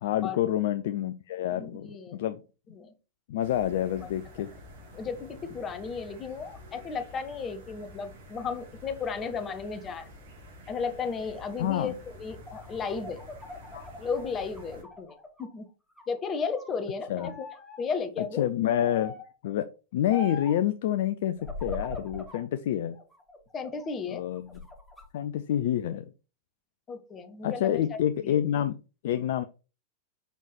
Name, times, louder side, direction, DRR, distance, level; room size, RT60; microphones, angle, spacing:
voice 1, 0.0-2.4 3.3-4.5 11.6-12.0 13.7-13.9 17.1-17.3 18.2-19.2 19.4-19.7 19.9-21.3 21.6-23.0 24.1-24.6 25.1-26.1 27.4-28.8 29.0-29.4, left 11 dB, 55° left, 10 dB, 0.4 m, -28 dB
voice 2, 1.5-2.2 2.7-2.9 4.4-4.5 4.9-10.1 10.7-13.2 14.0-15.7 16.1-17.5 17.8-18.4 23.5-24.2 26.9-28.4, left 5 dB, 25° left, 9 dB, 1.1 m, -34 dB
sound 1, 3.4-14.8, left 1 dB, 55° right, 2.9 m, -49 dB
sound 2, 12.3-15.5 15.9-16.8 17.2-17.8 18.8-19.3 20.1-20.6 21.4-22.4 22.9-23.9 24.3-25.0, left 2 dB, 5° left, 3.1 m, -41 dB
7.0 x 5.6 x 3.0 m, 0.32 s
figure-of-eight pair, 90°, 0 cm